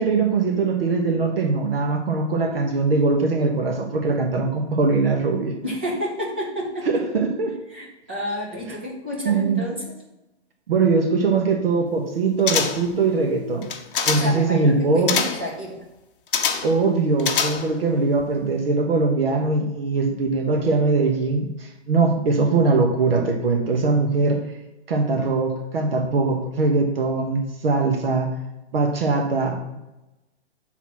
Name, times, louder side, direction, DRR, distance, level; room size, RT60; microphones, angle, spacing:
voice 1, 0.0-5.6 6.9-7.5 9.2-9.6 10.7-13.7 14.0-15.2 16.6-24.4 24.9-28.3 28.7-29.8, right 3 dB, 55° right, 3 dB, 1.1 m, -21 dB
voice 2, 5.6-6.9 7.7-9.9 14.2-15.8, equal, 10° right, -4 dB, 0.5 m, -30 dB
sound 1, 12.5-13.0 13.6-14.4 15.1-15.5 16.3-16.8 17.2-17.9 18.2-18.3, left 6 dB, 50° left, 0.8 m, -24 dB
6.1 x 4.0 x 5.9 m, 0.98 s
hypercardioid pair, 170°, 34 cm